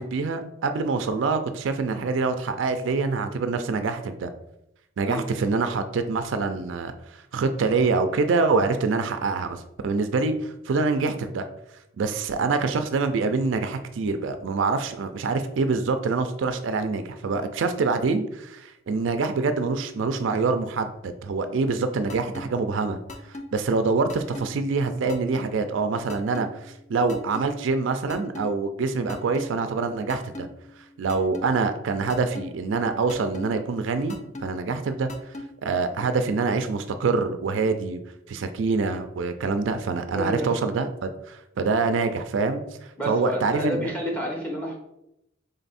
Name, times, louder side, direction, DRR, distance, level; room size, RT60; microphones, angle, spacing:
voice 1, 0.0-4.3 5.0-11.4 12.0-23.0 23.3-30.5 31.0-34.2 34.4-35.1 35.6-38.0 38.3-42.6 43.1-43.9, right 4 dB, 65° right, 8 dB, 0.4 m, -25 dB
sound 1, 22.1-22.4 23.1-23.4 24.1-24.4 25.1-25.4 26.1-26.4 27.1-27.4 28.1-28.4 29.1-29.4 30.1-30.4 31.1-31.4 32.1-32.4 33.1-33.4 34.1-34.4 35.1-35.4, left 2 dB, 35° left, 0.5 m, -36 dB
voice 2, 40.2-40.5 43.0-44.8, equal, 5° left, -1 dB, 1.0 m, -29 dB
3.8 x 3.4 x 4.1 m, 0.83 s
head